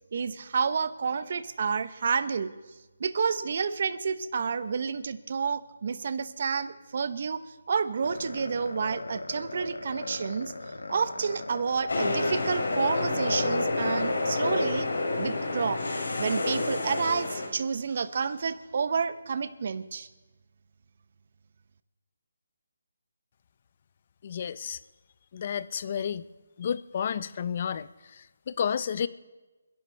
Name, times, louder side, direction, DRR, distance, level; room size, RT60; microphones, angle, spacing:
voice 1, 0.1-2.5 3.0-10.5 10.9-14.9 15.2-15.8 16.2-20.1, right 5 dB, 45° right, 13 dB, 0.8 m, -30 dB
sound 1, 8.0-14.5, left 2 dB, 90° left, 1.7 m, -40 dB
sound 2, 11.9-17.5, left 2 dB, 70° left, 3.0 m, -28 dB
voice 2, 24.2-24.8 25.3-26.3 26.6-29.1, left 7 dB, 35° left, 16 dB, 0.5 m, -31 dB
28.0 x 11.0 x 3.3 m, 1.2 s
figure-of-eight pair, 165°, 0 cm